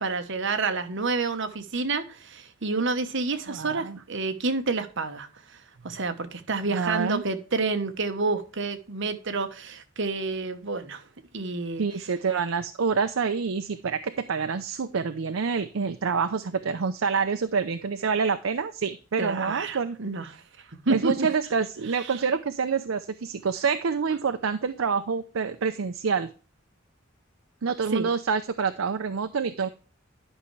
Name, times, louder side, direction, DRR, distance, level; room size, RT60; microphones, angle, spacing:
voice 1, 0.0-5.3 5.8-11.0 11.3-11.8 19.2-20.3 20.9-21.3 27.9-28.1, right 3 dB, 65° right, 1.1 m, -29 dB
voice 2, 3.5-4.0 6.7-7.2 11.8-20.0 20.9-26.3 27.6-29.7, right 5 dB, 85° right, 0.5 m, -27 dB
11.0 x 5.6 x 3.2 m
head